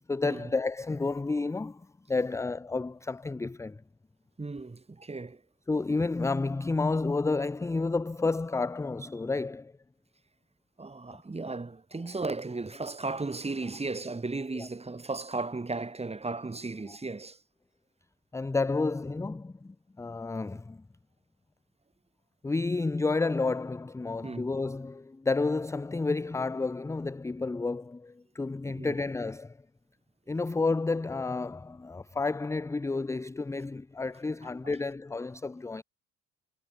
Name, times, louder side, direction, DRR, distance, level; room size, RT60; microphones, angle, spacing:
voice 1, 0.1-3.8 5.7-9.7 14.5-14.7 18.3-20.8 22.4-29.6 30.3-35.8, left 3 dB, 10° left, 0.5 m, -30 dB
voice 2, 4.4-5.4 10.8-17.4 24.2-24.5 28.7-29.0 34.6-34.8, right 3 dB, 15° right, 1.8 m, -35 dB
hypercardioid pair, 55°, 39 cm